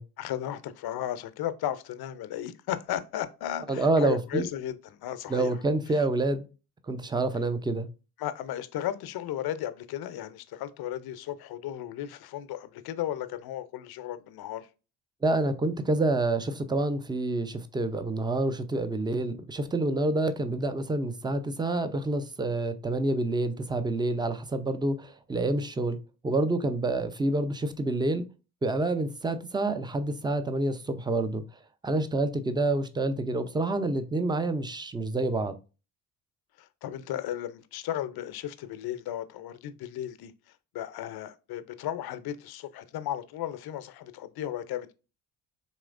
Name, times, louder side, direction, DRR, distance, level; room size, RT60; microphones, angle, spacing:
voice 1, 0.2-5.6 8.2-14.7 36.6-40.3 40.7-44.9, left 11 dB, 50° left, 0.6 m, -35 dB
voice 2, 3.7-4.5 5.3-6.5 6.9-7.9 15.2-26.0 26.2-28.2 28.6-31.4 31.8-35.5, right 2 dB, 10° right, 0.5 m, -28 dB
4.2 x 3.1 x 2.4 m
hypercardioid pair, 50°, 47 cm